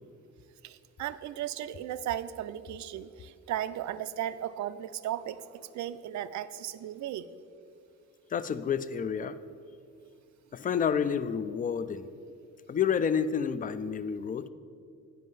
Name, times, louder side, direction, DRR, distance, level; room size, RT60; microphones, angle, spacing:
voice 1, 0.6-7.3, right 11 dB, 70° right, 13 dB, 0.5 m, -36 dB
voice 2, 8.3-9.4 10.5-12.1 12.7-14.5, left 7 dB, 30° left, 14 dB, 0.4 m, -29 dB
9.3 x 5.4 x 5.5 m, 2.4 s
cardioid pair, 90°, 30 cm